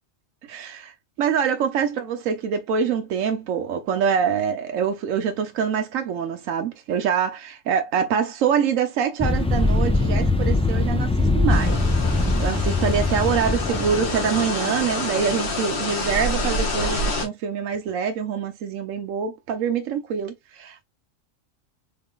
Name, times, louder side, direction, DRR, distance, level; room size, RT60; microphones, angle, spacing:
voice 1, 0.5-0.9 1.2-11.8 12.4-20.8, right 7 dB, 80° right, 1.1 m, -25 dB
sound 1, 9.2-14.5, left 2 dB, 5° left, 0.5 m, -22 dB
sound 2, 11.5-17.3, left 2 dB, 45° left, 1.3 m, -27 dB
3.8 x 3.6 x 2.3 m
omnidirectional pair, 1.3 m